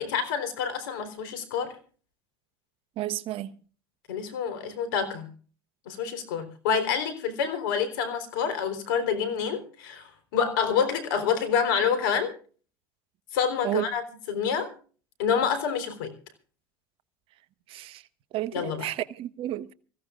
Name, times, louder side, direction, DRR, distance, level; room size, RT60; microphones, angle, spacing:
voice 1, 0.0-1.7 4.1-5.3 5.9-12.3 13.3-14.7 15.2-16.1 18.5-18.9, left 7 dB, 75° left, 3.7 m, -27 dB
voice 2, 3.0-3.5 13.6-13.8 17.7-18.0 18.3-19.7, right 14 dB, 55° right, 1.1 m, -31 dB
25.5 x 16.0 x 2.4 m
hypercardioid pair, 85°, 12 cm